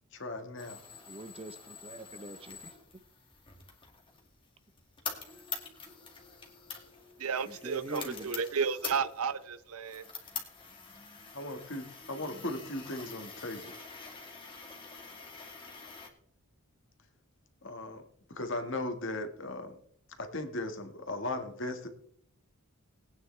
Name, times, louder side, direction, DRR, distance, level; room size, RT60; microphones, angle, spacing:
voice 1, 0.1-0.8 11.3-13.6 17.6-18.0 18.3-19.8 20.2-21.9, left 2 dB, 55° left, 1.6 m, -37 dB
sound 1, 0.6-16.1, left 5 dB, 20° left, 2.0 m, -46 dB
voice 2, 1.1-2.7 7.6-8.3, right 1 dB, 25° right, 0.7 m, -43 dB
voice 3, 7.2-10.1, right 6 dB, 75° right, 0.7 m, -33 dB
20.5 x 9.4 x 3.3 m
head